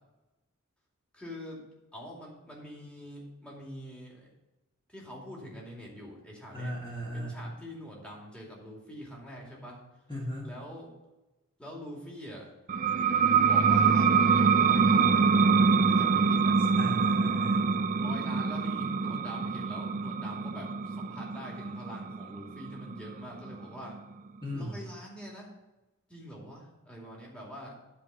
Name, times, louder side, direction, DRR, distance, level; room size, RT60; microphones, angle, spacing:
voice 1, 1.1-1.6 1.9-4.3 4.9-6.7 7.1-9.8 10.4-10.9 11.6-12.5 13.4-16.6 17.9-24.0 24.5-25.5 26.1-27.8, equal, 5° left, -3 dB, 2.5 m, -45 dB
voice 2, 6.5-7.4 10.1-10.5 16.8-17.7 24.4-24.8, equal, 20° left, -6 dB, 1.7 m, -37 dB
sound 1, 12.7-24.0, right 5 dB, 35° right, 0.4 m, -25 dB
11.0 x 4.9 x 7.0 m, 1.0 s
head